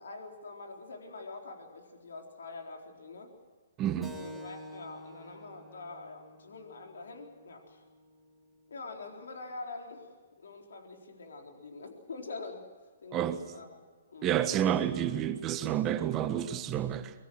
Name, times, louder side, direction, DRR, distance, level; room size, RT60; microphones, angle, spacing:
voice 1, 0.0-3.3 4.1-7.8 8.7-10.1 10.4-12.6 13.0-13.7 14.1-14.6, left 3 dB, 80° left, 4.1 m, -45 dB
voice 2, 3.8-4.2 13.1-13.4 14.2-17.1, right 10 dB, 25° right, 1.4 m, -29 dB
Keyboard (musical), 4.0-9.1, left 1 dB, ahead, 2.5 m, -50 dB
24.5 x 21.0 x 6.3 m
hypercardioid pair, 145°, 0 cm